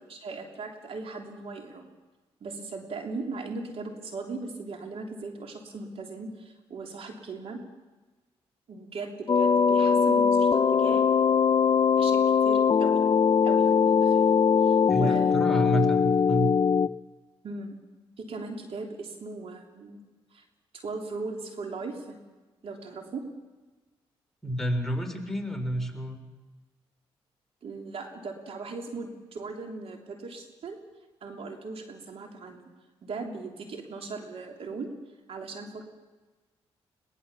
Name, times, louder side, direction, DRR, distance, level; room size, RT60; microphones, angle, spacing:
voice 1, 0.0-1.9 2.4-7.6 8.7-11.0 12.0-13.1 13.4-15.7 17.4-17.8 18.2-20.1 20.3-20.4 20.7-22.2 22.6-23.2 27.6-30.8 31.2-32.7 33.0-34.9 35.3-35.8, right 3 dB, 65° right, 3 dB, 3.3 m, -38 dB
sound 1, 9.3-16.9, left 6 dB, 45° left, 0.6 m, -21 dB
voice 2, 14.9-16.5 24.4-26.2, equal, 5° left, 3 dB, 3.9 m, -29 dB
22.0 x 19.0 x 7.2 m, 1.2 s
cardioid pair, 65°, 11 cm